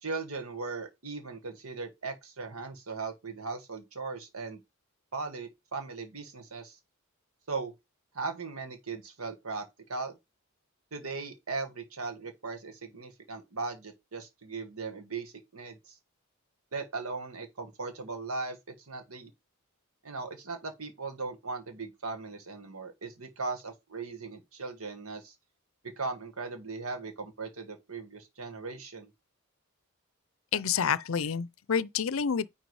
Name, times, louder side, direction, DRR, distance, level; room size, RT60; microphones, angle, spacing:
voice 1, 0.0-4.6 5.1-6.8 7.5-7.7 8.1-10.2 10.9-15.9 16.7-19.3 20.0-25.3 26.0-29.1, right 4 dB, 85° right, 1.7 m, -38 dB
voice 2, 30.5-32.5, left 7 dB, 70° left, 0.5 m, -28 dB
9.5 x 3.4 x 4.8 m
head